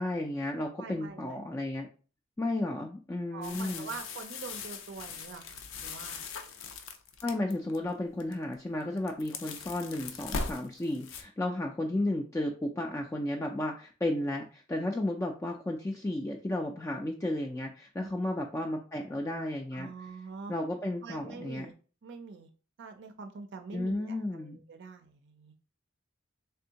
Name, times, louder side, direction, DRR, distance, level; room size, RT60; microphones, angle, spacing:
voice 1, 0.0-1.9 2.4-3.9 7.2-19.9 20.5-21.7 23.7-24.6, left 1 dB, 15° left, 1 dB, 0.3 m, -33 dB
voice 2, 0.8-1.5 3.3-6.2 18.0-18.1 19.7-20.5 21.0-21.7 22.0-22.5 22.8-25.5, right 5 dB, 55° right, 6 dB, 0.4 m, -44 dB
sound 1, 3.4-7.8 8.2-8.5 8.8-11.2, left 4 dB, 70° left, 0.5 m, -40 dB
3.4 x 3.4 x 2.8 m, 0.37 s
head